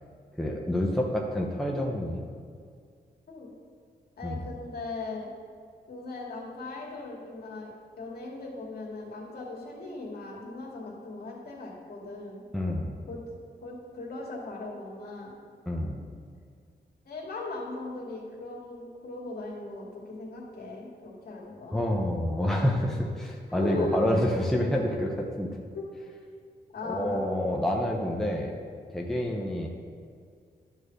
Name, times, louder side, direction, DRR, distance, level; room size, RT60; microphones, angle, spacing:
voice 1, 0.4-2.2 4.2-4.4 12.5-13.0 15.7-16.0 21.7-25.5 26.8-28.5 28.9-29.7, left 1 dB, ahead, -1 dB, 0.9 m, -28 dB
voice 2, 4.2-5.3 5.9-7.7 8.0-12.4 13.1-13.2 13.6-15.3 16.0-16.1 17.1-21.8 23.5-24.3 24.9-25.0 25.7-25.9 26.7-27.2, left 2 dB, 65° left, -3 dB, 2.3 m, -38 dB
11.0 x 4.9 x 6.4 m, 2.1 s
wide cardioid pair, 130°, 17 cm